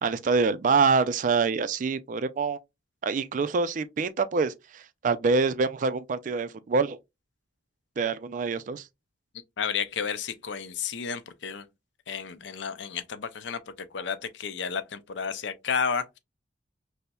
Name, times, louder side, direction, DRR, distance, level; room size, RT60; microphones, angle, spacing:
voice 1, 0.0-2.6 3.0-7.0 8.0-8.9, right 4 dB, 45° right, 0.3 m, -25 dB
voice 2, 9.6-11.7 12.1-13.6 13.9-16.2, left 6 dB, 75° left, 0.5 m, -32 dB
5.4 x 2.1 x 2.2 m
head